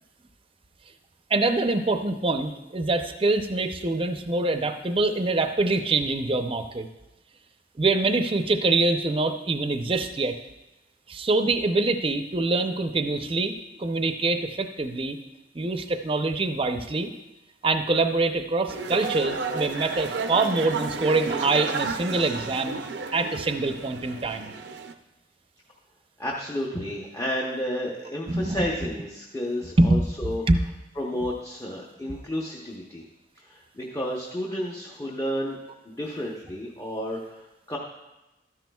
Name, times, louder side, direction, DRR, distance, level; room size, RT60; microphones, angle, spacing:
voice 1, 1.3-6.9 7.8-10.4 11.1-13.5 13.8-15.2 15.5-17.1 17.6-22.8 23.1-24.5 28.3-28.6 29.8-30.0 30.5-30.6, right 2 dB, 30° right, 7 dB, 0.6 m, -24 dB
sound 1, 18.7-24.9, right 4 dB, 70° right, 0.6 m, -32 dB
voice 2, 26.2-30.4 31.0-33.0 33.4-35.6 35.8-37.8, equal, 20° left, -2 dB, 0.9 m, -31 dB
13.0 x 10.5 x 2.3 m, 0.99 s
head